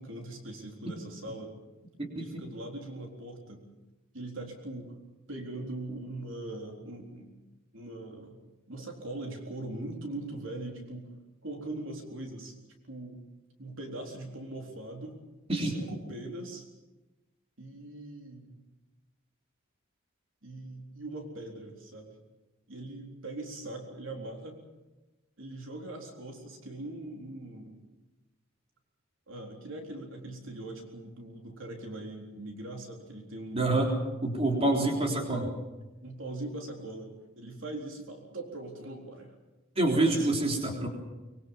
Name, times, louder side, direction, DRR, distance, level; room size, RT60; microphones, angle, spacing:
voice 1, 0.0-1.5 2.2-3.7 4.1-5.0 5.3-7.3 7.7-8.4 8.7-11.1 11.4-12.6 12.9-13.2 13.6-15.2 15.6-16.7 17.6-18.6 20.4-22.1 22.7-24.6 25.4-27.8 29.3-33.7 34.4-35.1 36.0-37.1 37.4-39.3 39.9-40.3, right 2 dB, 65° right, 2 dB, 4.0 m, -41 dB
voice 2, 33.5-33.9 34.2-35.5 39.8-40.9, right 2 dB, 30° right, 1 dB, 3.7 m, -26 dB
24.0 x 22.5 x 7.3 m, 1.1 s
head